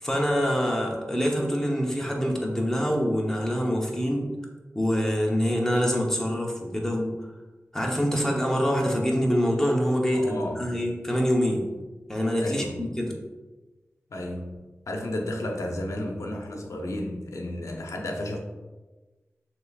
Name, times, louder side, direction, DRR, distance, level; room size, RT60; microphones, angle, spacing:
voice 1, 0.0-4.3 4.7-7.2 7.7-11.7 12.1-13.1, equal, 10° left, -1 dB, 0.9 m, -25 dB
voice 2, 10.1-10.7 12.4-12.9 14.1-14.5 14.9-18.4, left 1 dB, 75° left, 1 dB, 0.7 m, -32 dB
6.7 x 2.9 x 2.4 m, 1.2 s
wide cardioid pair, 70°, 5 cm